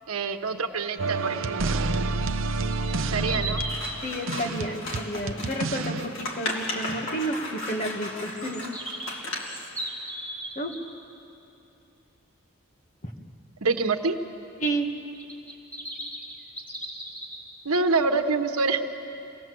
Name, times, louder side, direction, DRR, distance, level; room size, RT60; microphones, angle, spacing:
voice 1, 0.1-1.8 3.1-3.6 13.6-14.2 17.6-18.8, right 4 dB, 85° right, 6 dB, 1.2 m, -26 dB
sound 1, 1.0-6.1, right 3 dB, 65° right, 0.7 m, -29 dB
sound 2, 2.7-4.0 8.2-10.8 15.1-17.4, right 1 dB, 10° left, 3.0 m, -36 dB
Scissors, 3.6-9.7, left 2 dB, 60° left, 2.8 m, -35 dB
voice 2, 4.0-8.6 10.5-10.7 13.0-13.1 14.6-14.9, right 1 dB, 35° left, 2 dB, 1.8 m, -31 dB
26.5 x 19.0 x 7.8 m, 2.8 s
head